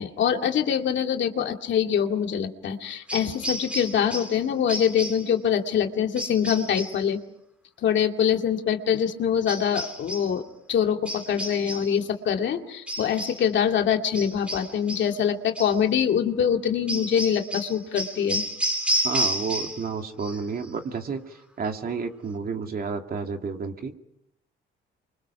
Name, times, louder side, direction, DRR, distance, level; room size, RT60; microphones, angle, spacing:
voice 1, 0.0-7.2 7.8-18.4, left 8 dB, 65° left, 4 dB, 2.3 m, -24 dB
sound 1, 3.1-4.4 4.7-5.3 6.2-7.0 9.5-10.3 11.1-12.0 12.9-13.5 14.1-15.2 15.6-15.8 16.9-19.9 20.2-20.7, equal, 5° right, 3.5 m, -31 dB
voice 2, 19.0-23.9, right 5 dB, 50° right, 4 dB, 2.6 m, -31 dB
28.5 x 25.0 x 5.9 m, 0.77 s
cardioid pair, 90°, 20 cm